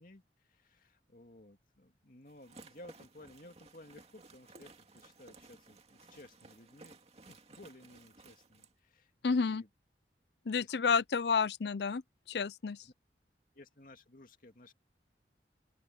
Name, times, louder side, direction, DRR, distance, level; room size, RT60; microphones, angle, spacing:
voice 1, 0.0-7.0 7.2-9.7 10.4-11.1 12.8-12.9 13.5-14.7, left 1 dB, 50° left, 2.3 m, -56 dB
sound 1, 2.3-8.7, right 3 dB, 35° right, 2.5 m, -57 dB
voice 2, 9.2-9.6 10.5-12.0 12.3-12.8, left 5 dB, 65° left, 0.5 m, -30 dB
open air
head